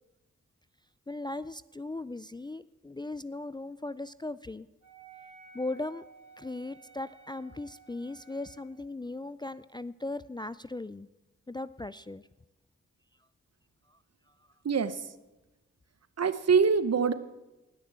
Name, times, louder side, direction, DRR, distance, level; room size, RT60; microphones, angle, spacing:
voice 1, 1.1-4.7 5.5-6.0 6.4-11.1 11.5-12.3 13.9-14.0, left 2 dB, 15° left, 15 dB, 0.4 m, -38 dB
Wind instrument woodwind instrument, 4.8-8.7, right 5 dB, 70° right, 3.3 m, -54 dB
voice 2, 14.6-15.1 16.2-17.1, right 5 dB, 55° right, 14 dB, 0.9 m, -24 dB
19.0 x 6.6 x 7.6 m, 1.1 s
cardioid pair, 55°, 31 cm